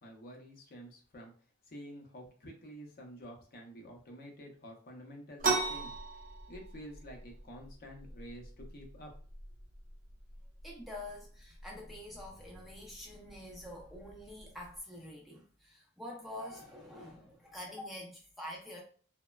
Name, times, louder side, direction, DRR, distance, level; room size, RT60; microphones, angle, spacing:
voice 1, 0.0-1.3 1.7-9.1, equal, 45° left, 1 dB, 0.6 m, -50 dB
sound 1, 5.4-14.8, right 3 dB, 40° right, 0.6 m, -40 dB
voice 2, 10.6-18.8, left 1 dB, ahead, -2 dB, 0.4 m, -46 dB
3.0 x 2.1 x 2.2 m, 0.43 s
head